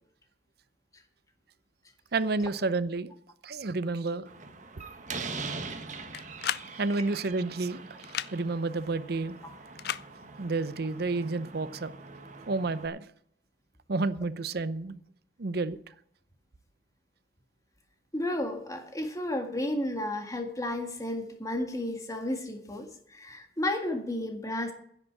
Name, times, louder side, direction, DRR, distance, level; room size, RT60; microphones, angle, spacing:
voice 1, 2.1-3.1 3.4-4.3 6.7-9.4 10.4-11.9 12.5-13.1 13.9-15.0 15.4-15.8, right 3 dB, 60° right, 15 dB, 0.7 m, -30 dB
Slam, 4.3-12.9, right 4 dB, 45° right, 1.4 m, -42 dB
sound 1, 6.1-6.7 8.0-8.3 9.8-10.1, left 10 dB, 60° left, 0.4 m, -32 dB
voice 2, 18.1-24.7, left 1 dB, 20° left, 4 dB, 1.8 m, -32 dB
10.5 x 7.8 x 8.7 m, 0.68 s
head